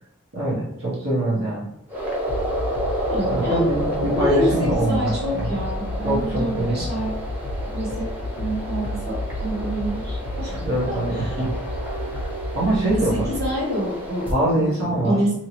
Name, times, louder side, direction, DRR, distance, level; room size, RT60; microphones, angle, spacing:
voice 1, 0.3-1.7 3.3-5.5 6.0-6.8 10.5-11.5 12.5-13.3 14.3-15.2, right 1 dB, 75° right, -8 dB, 0.9 m, -23 dB
sound 1, 1.9-14.3, right 1 dB, 10° right, 0.6 m, -30 dB
sound 2, 2.3-13.5, left 1 dB, 80° left, 0.4 m, -32 dB
voice 2, 3.1-3.7 4.1-7.1 7.6-10.5 10.9-11.4 12.9-15.3, equal, 50° right, -5 dB, 1.2 m, -27 dB
2.9 x 2.7 x 2.9 m, 0.77 s
head